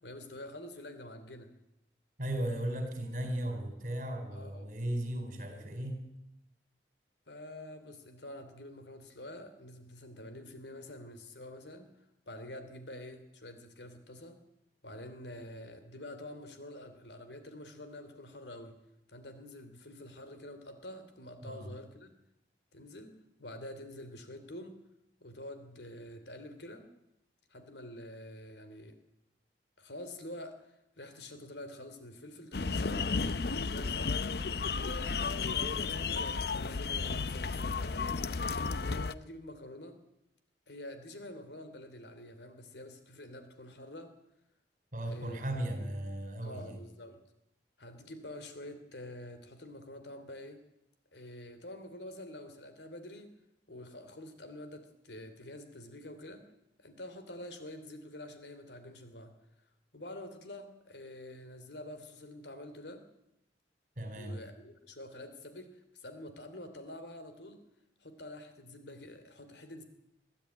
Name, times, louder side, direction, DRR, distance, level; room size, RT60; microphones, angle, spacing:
voice 1, 0.0-1.5 4.3-4.7 7.3-11.9 12.3-14.4 14.8-18.8 19.1-22.1 22.7-23.1 23.4-24.8 25.2-26.9 27.5-29.0 29.8-34.2 34.8-40.0 40.7-44.1 45.1-45.4 45.8-45.9 46.4-47.2 47.8-50.6 51.1-53.3 53.7-56.4 56.8-59.3 59.9-63.0 64.1-67.6 68.0-69.8, left 1 dB, 80° left, 9 dB, 3.0 m, -47 dB
voice 2, 2.2-6.1 21.4-21.7 44.9-46.8 64.0-64.4, right 1 dB, 45° right, 6 dB, 4.6 m, -36 dB
sound 1, 32.5-39.1, left 4 dB, 60° left, 0.7 m, -33 dB
22.0 x 13.5 x 9.3 m, 0.84 s
head